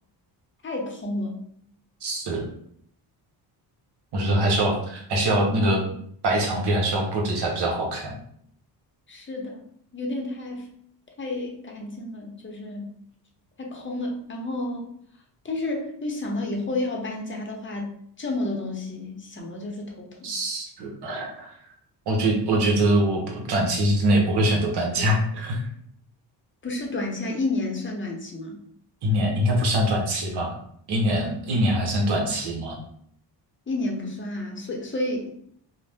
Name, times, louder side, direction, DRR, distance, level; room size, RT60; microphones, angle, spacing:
voice 1, 0.6-1.5 9.1-9.6 9.9-10.7 11.2-12.9 13.6-14.8 15.4-17.9 18.2-20.3 26.6-28.6 33.7-35.3, left 2 dB, 25° left, 1 dB, 0.7 m, -30 dB
voice 2, 2.0-2.5 4.1-5.8 6.2-8.1 20.2-21.5 22.1-25.6 29.0-30.5 30.9-32.8, right 1 dB, 65° right, 0 dB, 0.9 m, -23 dB
2.6 x 2.1 x 3.3 m, 0.66 s
cardioid pair, 85°, 44 cm